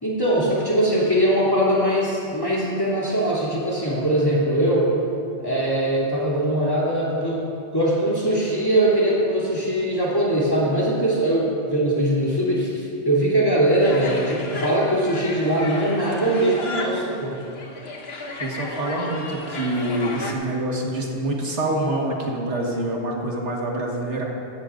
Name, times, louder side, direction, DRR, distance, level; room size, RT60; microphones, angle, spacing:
voice 1, 0.0-4.9 5.4-17.4, right 1 dB, 20° left, -7 dB, 2.9 m, -21 dB
sound 1, 13.8-20.3, left 2 dB, 65° left, 1.4 m, -33 dB
voice 2, 18.4-24.2, right 1 dB, 85° right, -1 dB, 1.8 m, -26 dB
16.0 x 14.0 x 2.5 m, 2.7 s
omnidirectional pair, 1.1 m